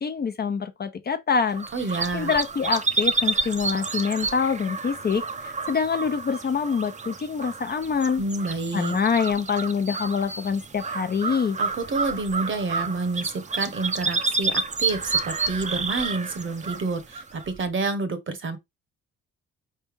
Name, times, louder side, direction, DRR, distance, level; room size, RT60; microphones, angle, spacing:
voice 1, 0.0-1.7 2.1-8.2 8.7-11.6, left 6 dB, 35° left, 0.5 m, -25 dB
sound 1, 1.5-17.6, right 3 dB, 25° right, 0.6 m, -30 dB
voice 2, 1.7-2.3 8.2-9.0 11.6-18.6, right 3 dB, 40° right, 1.0 m, -29 dB
4.3 x 3.3 x 3.3 m
cardioid pair, 90°, 30 cm